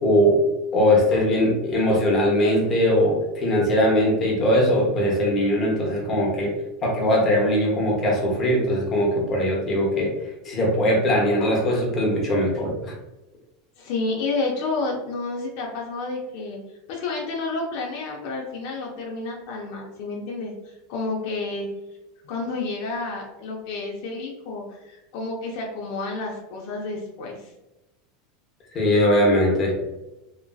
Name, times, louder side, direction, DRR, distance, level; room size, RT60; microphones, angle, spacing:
voice 1, 0.0-0.4 0.7-6.5 6.8-10.1 10.4-12.9 28.7-29.7, equal, 30° left, -2 dB, 0.9 m, -20 dB
voice 2, 13.8-16.6 16.9-21.7 22.2-27.5, left 3 dB, 60° left, -1 dB, 0.5 m, -30 dB
2.9 x 2.6 x 2.2 m, 0.97 s
supercardioid pair, 150°, 0 cm